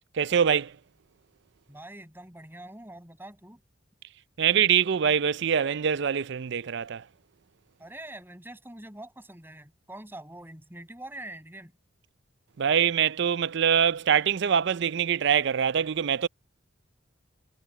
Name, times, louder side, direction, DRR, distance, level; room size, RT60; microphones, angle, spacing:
voice 1, 0.1-0.7 4.4-7.0 12.6-16.3, right 8 dB, 60° right, 0.5 m, -24 dB
voice 2, 1.7-3.6 7.8-11.7, right 1 dB, 10° right, 7.4 m, -44 dB
head